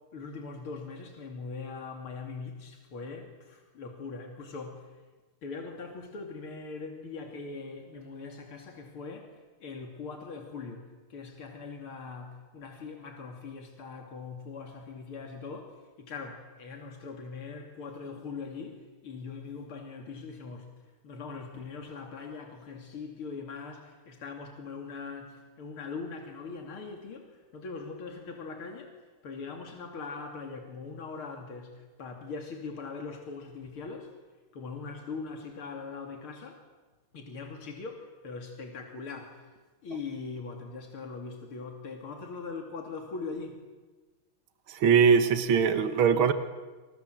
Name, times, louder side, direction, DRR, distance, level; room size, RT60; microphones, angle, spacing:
voice 1, 0.1-4.8 5.4-9.3 9.6-10.8 11.1-20.7 21.0-28.9 29.2-34.1 34.5-36.6 37.1-39.4 39.8-43.6, left 4 dB, 85° left, 3 dB, 3.5 m, -41 dB
voice 2, 44.7-46.3, right 6 dB, 75° right, 10 dB, 2.2 m, -22 dB
28.0 x 27.0 x 7.8 m, 1.3 s
omnidirectional pair, 2.3 m